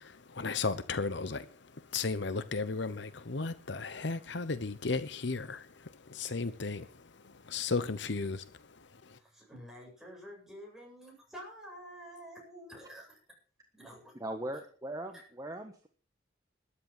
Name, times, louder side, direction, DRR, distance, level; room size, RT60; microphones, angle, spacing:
voice 1, 0.0-9.2, left 4 dB, 65° left, 0.9 m, -35 dB
voice 2, 9.2-13.2 13.7-14.1 15.1-15.2, equal, ahead, 7.9 m, -49 dB
voice 3, 14.2-15.9, right 1 dB, 20° right, 1.3 m, -39 dB
13.0 x 9.8 x 7.7 m
head